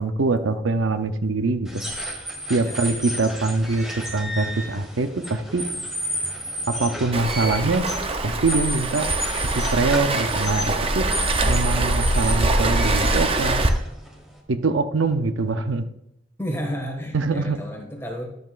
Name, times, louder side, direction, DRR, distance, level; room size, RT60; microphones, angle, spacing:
voice 1, 0.0-1.8 2.5-5.6 6.7-7.9 8.2-9.1 9.4-11.0 11.5-13.6 14.5-15.8 17.1-17.6, right 3 dB, 85° right, 10 dB, 0.6 m, -23 dB
sound 1, 1.6-14.4, equal, 5° right, 1.5 m, -32 dB
Waves surf, 7.1-13.7, right 2 dB, 30° right, 0.7 m, -23 dB
voice 2, 16.4-18.3, equal, 15° left, 0 dB, 1.8 m, -31 dB
12.5 x 7.8 x 2.5 m, 0.81 s
head